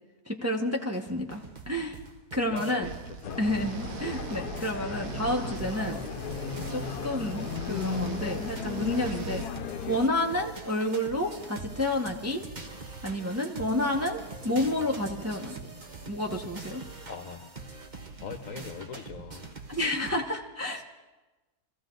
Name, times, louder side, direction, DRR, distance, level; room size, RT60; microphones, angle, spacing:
voice 1, 0.3-2.0 2.3-2.9 3.4-6.0 6.7-9.4 9.9-12.4 13.0-15.5 16.1-16.8 19.7-20.8, left 1 dB, 10° right, 1 dB, 0.9 m, -30 dB
sound 1, 0.9-20.2, right 3 dB, 30° right, 1.3 m, -44 dB
voice 2, 2.5-3.4 17.1-17.5 18.2-19.5, left 6 dB, 60° left, 5 dB, 1.3 m, -40 dB
sound 2, 2.8-9.5, right 8 dB, 65° right, 1.3 m, -39 dB
sound 3, 3.2-10.1, left 9 dB, 85° left, 1.2 m, -36 dB
25.0 x 14.5 x 3.9 m, 1.2 s
omnidirectional pair, 1.6 m